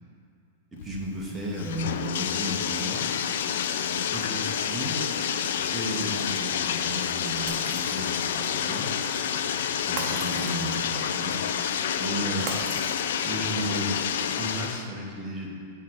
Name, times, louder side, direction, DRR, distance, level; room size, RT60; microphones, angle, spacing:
voice 1, 0.7-3.1 3.9-5.0 5.6-8.9 9.9-11.4 12.0-12.6 13.2-14.0 14.4-15.5, equal, 5° right, -4 dB, 0.9 m, -34 dB
Bathtub (filling or washing), 0.8-14.9, left 8 dB, 70° left, 0.3 m, -29 dB
Shatter, 7.5-8.4 10.0-11.0 12.5-13.5, right 4 dB, 35° right, 0.7 m, -38 dB
8.0 x 3.7 x 4.5 m, 2.4 s
supercardioid pair, 160°, 0 cm